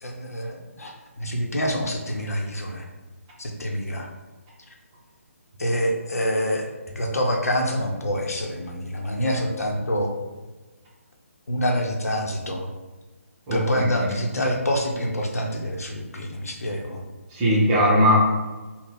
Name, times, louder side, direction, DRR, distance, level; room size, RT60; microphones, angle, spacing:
voice 1, 0.0-2.8 3.4-4.1 5.6-10.1 11.5-12.7 13.5-17.0 17.4-17.7, equal, 85° left, 1 dB, 0.9 m, -26 dB
voice 2, 13.5-14.1 17.3-18.2, equal, 20° right, -5 dB, 1.0 m, -20 dB
4.1 x 2.3 x 3.6 m, 1.2 s
hypercardioid pair, 155°, 8 cm